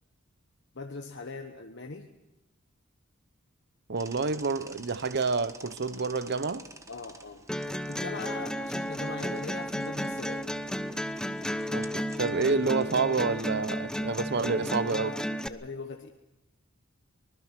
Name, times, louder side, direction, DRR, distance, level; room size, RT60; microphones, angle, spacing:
voice 1, 0.7-2.1 6.9-7.5 7.9-10.7 14.3-16.1, left 3 dB, 55° left, 1.2 m, -41 dB
voice 2, 3.9-6.6 11.7-15.1, right 4 dB, 50° right, 0.8 m, -28 dB
sound 1, 4.0-14.4, right 3 dB, 15° right, 1.3 m, -52 dB
sound 2, 7.5-15.5, equal, 5° left, 0.7 m, -33 dB
24.5 x 20.5 x 6.0 m
head